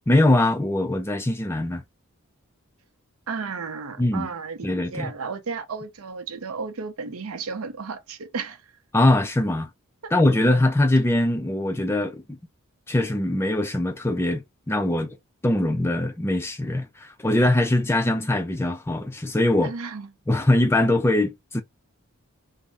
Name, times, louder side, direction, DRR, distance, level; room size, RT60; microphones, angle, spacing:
voice 1, 0.1-1.8 4.0-4.3 4.6-5.1 8.9-9.7 10.1-12.4 12.9-15.2 15.4-19.7 20.3-21.6, left 1 dB, 10° left, 0.3 m, -22 dB
voice 2, 3.3-8.6 10.0-10.1 19.6-20.1, right 5 dB, 75° right, 0.6 m, -33 dB
2.6 x 2.0 x 3.3 m
head